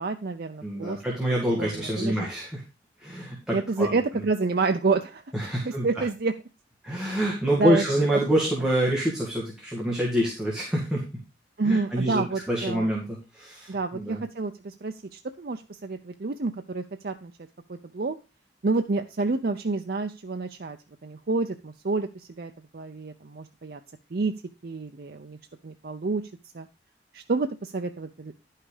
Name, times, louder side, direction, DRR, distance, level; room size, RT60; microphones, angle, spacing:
voice 1, 0.0-1.0 1.5-2.3 3.5-5.2 5.6-6.3 7.6-7.8 11.6-12.9 13.7-17.3 17.7-18.2 18.6-20.8 21.0-22.1 22.4-23.8 24.1-24.3 24.6-25.4 25.6-26.2 26.5-26.7 27.1-28.3, right 3 dB, 55° right, 7 dB, 0.5 m, -28 dB
voice 2, 0.6-2.6 3.0-3.9 5.3-6.0 6.8-11.0 11.6-14.2, right 1 dB, 5° right, -4 dB, 2.1 m, -26 dB
11.0 x 5.7 x 4.9 m, 0.30 s
head